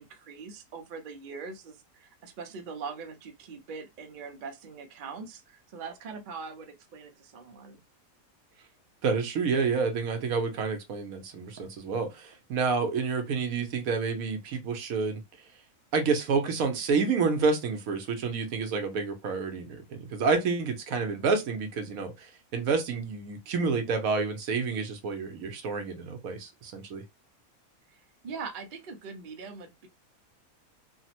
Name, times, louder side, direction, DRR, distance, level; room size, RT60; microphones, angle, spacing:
voice 1, 0.0-7.8 27.9-29.9, right 5 dB, 55° right, 0.5 m, -42 dB
voice 2, 9.0-15.2 15.9-27.0, right 4 dB, 75° right, 1.1 m, -29 dB
3.3 x 2.0 x 2.8 m
omnidirectional pair, 1.5 m